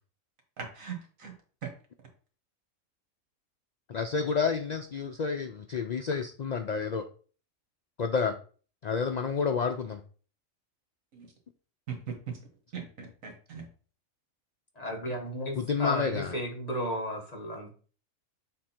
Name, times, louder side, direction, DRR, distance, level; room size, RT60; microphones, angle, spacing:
voice 1, 0.6-1.3 1.6-1.7 11.1-11.3 11.9-12.0 12.3-12.4 12.7-13.7, right 7 dB, 80° right, 2 dB, 2.0 m, -39 dB
voice 2, 3.9-7.1 8.0-8.4 8.8-10.0 15.6-16.4, left 5 dB, 75° left, 7 dB, 0.4 m, -29 dB
voice 3, 14.8-17.7, equal, 30° left, 1 dB, 1.2 m, -34 dB
6.6 x 3.8 x 4.3 m, 0.40 s
omnidirectional pair, 1.4 m